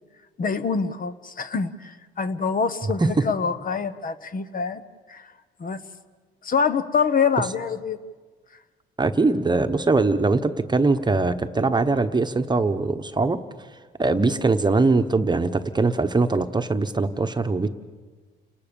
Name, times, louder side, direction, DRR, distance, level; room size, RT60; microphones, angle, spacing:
voice 1, 0.4-4.8 5.1-5.3 5.6-5.8 6.4-8.0, left 5 dB, 45° left, 11 dB, 1.1 m, -25 dB
voice 2, 9.0-13.4 14.0-17.7, right 3 dB, 20° right, 8 dB, 1.1 m, -21 dB
29.5 x 19.5 x 7.0 m, 1.4 s
cardioid pair, 90°, 20 cm